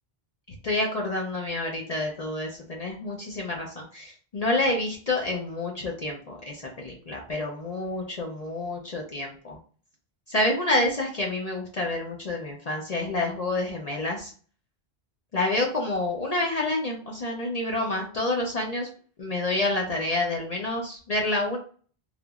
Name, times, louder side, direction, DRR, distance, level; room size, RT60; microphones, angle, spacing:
voice 1, 0.6-9.6 10.3-14.3 15.3-18.9 19.2-21.6, left 2 dB, 45° left, 0 dB, 0.6 m, -28 dB
3.5 x 2.9 x 2.3 m, 0.42 s
omnidirectional pair, 1.1 m